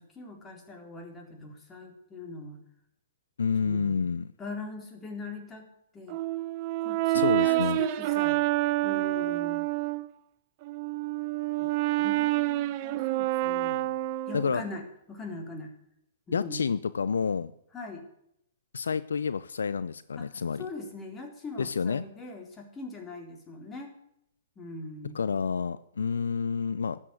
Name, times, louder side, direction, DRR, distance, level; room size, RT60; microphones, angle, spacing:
voice 1, 0.0-2.6 3.6-4.0 4.4-5.7 5.9-6.2 6.8-8.4 8.8-9.7 11.6-11.7 12.0-13.9 14.3-14.8 15.1-15.7 16.3-16.7 17.7-18.0 20.2-20.3 20.6-23.9 24.6-25.3, left 3 dB, 20° left, 3 dB, 4.0 m, -41 dB
voice 2, 3.4-4.3 7.1-7.8 14.3-14.6 16.3-17.5 18.7-20.7 21.6-22.0 25.1-27.0, left 6 dB, 75° left, 16 dB, 0.6 m, -29 dB
Brass instrument, 6.1-10.1 10.6-14.7, right 17 dB, 45° right, 0.7 m, -28 dB
13.0 x 8.6 x 9.5 m, 0.75 s
hypercardioid pair, 120°, 0 cm